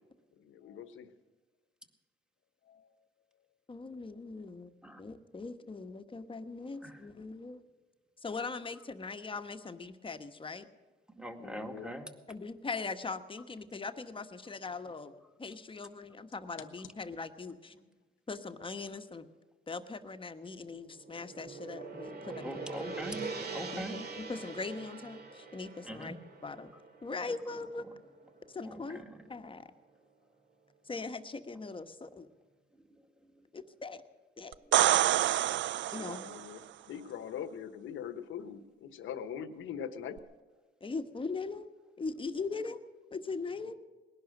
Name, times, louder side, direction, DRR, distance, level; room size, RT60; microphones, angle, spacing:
voice 1, 0.4-1.1 2.6-3.0 11.4-12.3 35.9-40.3 43.6-43.7, left 8 dB, 80° left, 12 dB, 1.2 m, -43 dB
voice 2, 3.7-4.7 5.0-7.6 8.2-10.7 12.3-15.1 15.4-17.7 18.3-19.3 19.7-22.5 23.7-26.2 26.4-26.7 27.0-27.8 28.5-29.7 30.8-32.3 33.5-34.0 34.4-34.6 35.9-36.2 40.8-41.7 42.0-42.8 43.1-43.7, left 4 dB, 25° left, 9 dB, 1.2 m, -40 dB
voice 3, 11.2-12.1 22.4-24.0 25.8-26.2 28.6-29.1, equal, 5° right, 5 dB, 2.0 m, -42 dB
Gong, 20.7-29.0, right 4 dB, 55° right, 2.8 m, -44 dB
sound 1, 34.5-36.5 40.2-40.3, right 13 dB, 70° right, 0.5 m, -27 dB
20.0 x 11.0 x 6.5 m, 1.3 s
cardioid pair, 90°, 20 cm